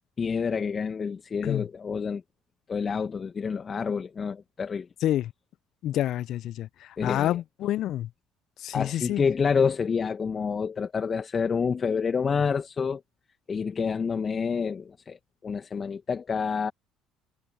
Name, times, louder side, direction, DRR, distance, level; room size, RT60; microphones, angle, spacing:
voice 1, 0.2-2.2 2.7-4.9 7.0-7.4 8.7-13.0 13.5-16.7, left 6 dB, 35° left, 2.0 m, -28 dB
voice 2, 5.0-5.3 5.8-8.1 8.6-9.2, left 12 dB, 60° left, 0.8 m, -28 dB
hypercardioid pair, 60°, 0 cm